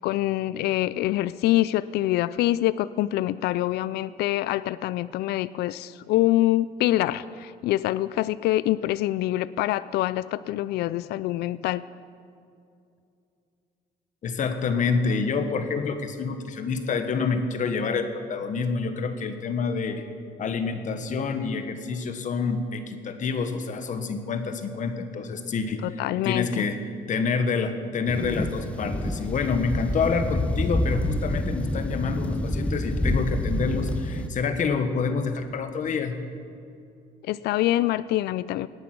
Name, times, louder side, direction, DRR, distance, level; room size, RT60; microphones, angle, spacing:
voice 1, 0.0-11.8 25.8-26.7 37.2-38.7, left 15 dB, 75° left, 17 dB, 0.4 m, -25 dB
voice 2, 14.2-20.1 20.4-26.8 27.1-36.2, left 5 dB, 50° left, 8 dB, 1.3 m, -27 dB
sound 1, 28.1-34.3, left 1 dB, 5° left, 0.8 m, -27 dB
18.0 x 9.2 x 6.1 m, 2.5 s
cardioid pair, 110°, 17 cm